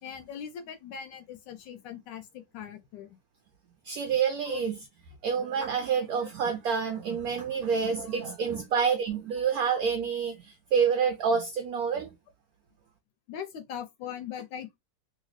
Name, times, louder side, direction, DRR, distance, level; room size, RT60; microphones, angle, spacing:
voice 1, 0.0-3.2 4.5-4.6 6.2-6.3 8.1-8.2 13.3-14.8, left 8 dB, 80° left, 1.2 m, -40 dB
voice 2, 3.8-4.7 5.2-12.1, right 6 dB, 70° right, 0.9 m, -28 dB
2.9 x 2.8 x 3.0 m
omnidirectional pair, 2.0 m